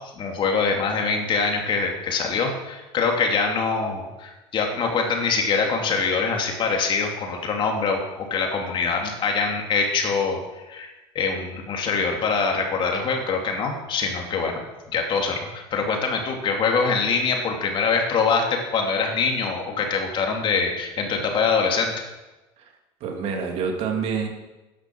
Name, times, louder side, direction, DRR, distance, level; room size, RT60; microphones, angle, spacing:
voice 1, 0.2-10.4 10.7-10.9 11.1-14.6 14.9-21.9, left 5 dB, 45° left, 2 dB, 2.9 m, -24 dB
voice 2, 23.0-24.3, right 6 dB, 55° right, 2 dB, 3.1 m, -27 dB
13.5 x 10.5 x 6.3 m, 1.1 s
supercardioid pair, 125°, 12 cm